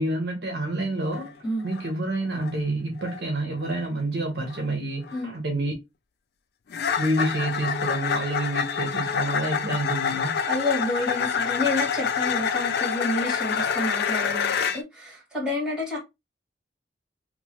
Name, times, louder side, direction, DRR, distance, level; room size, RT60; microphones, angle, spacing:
voice 1, 0.0-1.3 1.6-5.7 7.0-10.4, right 1 dB, 60° right, 0.8 m, -28 dB
sound 1, 1.1-1.3 1.6-2.0 2.3-2.6 3.0-3.2 3.6-3.9 4.5-4.7 5.0-5.2 6.7-14.8, left 7 dB, 60° left, 0.3 m, -27 dB
voice 2, 10.5-16.0, left 1 dB, 5° right, 1.8 m, -29 dB
3.0 x 2.1 x 2.8 m
head